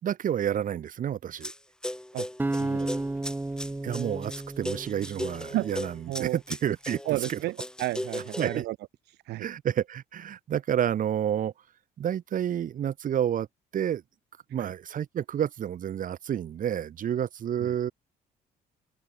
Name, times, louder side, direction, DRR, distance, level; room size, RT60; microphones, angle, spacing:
voice 1, 0.0-1.5 3.8-7.0 7.3-7.4 8.4-8.7 9.4-11.5 12.0-13.5 13.7-14.0 14.5-17.9, right 10 dB, 50° right, 3.7 m, -29 dB
sound 1, 1.4-1.6 1.8-8.6, left 1 dB, 5° left, 5.1 m, -37 dB
sound 2, 2.4-5.6, right 2 dB, 10° right, 2.3 m, -32 dB
voice 2, 2.6-3.0 5.5-5.7 6.1-6.4 7.0-8.8 9.3-9.5 14.6-14.7 17.6-17.7, right 17 dB, 80° right, 4.6 m, -32 dB
cardioid pair, 110°, 17 cm